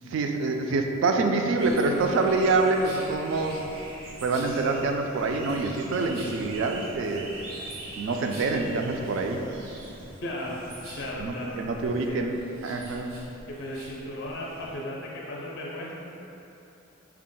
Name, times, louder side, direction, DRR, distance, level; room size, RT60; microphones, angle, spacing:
voice 1, 0.1-3.6 4.2-7.3 8.0-9.4 11.2-13.2, right 3 dB, 65° right, 4 dB, 0.3 m, -26 dB
sound 1, 1.6-14.8, right 1 dB, 85° right, 0.7 m, -43 dB
voice 2, 10.2-10.6 11.0-12.2 13.5-15.9, left 1 dB, 55° left, -3 dB, 0.4 m, -36 dB
4.5 x 2.1 x 3.7 m, 3.0 s
head